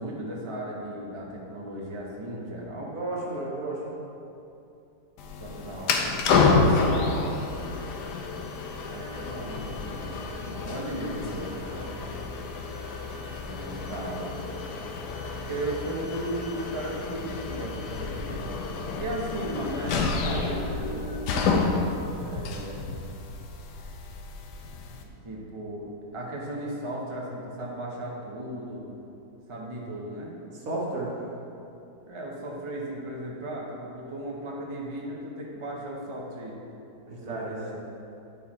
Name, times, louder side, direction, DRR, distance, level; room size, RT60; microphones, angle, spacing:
voice 1, 0.0-2.9 5.4-6.2 8.8-11.9 13.4-14.4 15.5-18.4 19.0-21.1 22.2-23.0 24.9-28.9 29.5-30.3 32.1-36.6 37.1-37.7, right 1 dB, 25° right, -3 dB, 0.7 m, -36 dB
voice 2, 2.9-3.9 7.1-7.4 30.5-31.1 37.0-37.6, right 2 dB, 60° right, -5 dB, 1.7 m, -33 dB
sound 1, 5.2-25.0, left 4 dB, 80° left, 1.3 m, -29 dB
9.6 x 4.6 x 4.3 m, 2.8 s
omnidirectional pair, 1.8 m